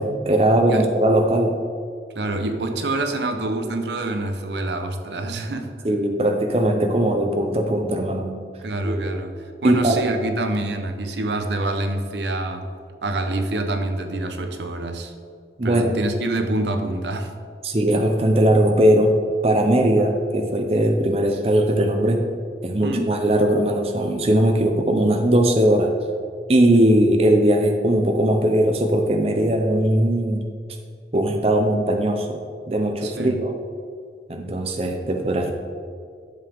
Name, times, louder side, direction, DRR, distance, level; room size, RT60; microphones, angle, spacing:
voice 1, 0.0-1.6 5.8-8.4 8.8-9.1 9.6-10.0 15.6-15.9 17.6-22.2 22.6-25.9 26.5-30.4 31.1-32.4 32.7-33.5 34.3-35.5, right 1 dB, 35° right, 4 dB, 0.6 m, -19 dB
voice 2, 2.1-5.7 8.6-9.3 9.6-12.7 13.0-15.1 15.6-17.3 22.8-23.1 33.0-33.4, right 2 dB, 80° right, 6 dB, 0.8 m, -26 dB
11.0 x 7.1 x 3.5 m, 2.2 s
head